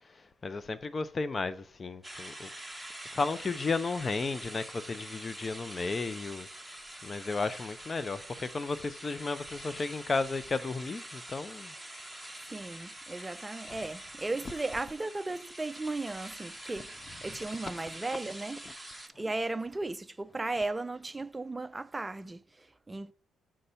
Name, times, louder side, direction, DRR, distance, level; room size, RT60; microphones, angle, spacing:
voice 1, 0.1-2.5 3.1-6.5 7.0-11.7, left 3 dB, 30° left, 0.7 m, -34 dB
sound 1, 2.0-19.1, right 1 dB, ahead, 1.3 m, -45 dB
voice 2, 12.4-18.6 19.2-23.1, right 2 dB, 15° right, 0.5 m, -36 dB
7.4 x 4.3 x 6.8 m
cardioid pair, 90°, 0 cm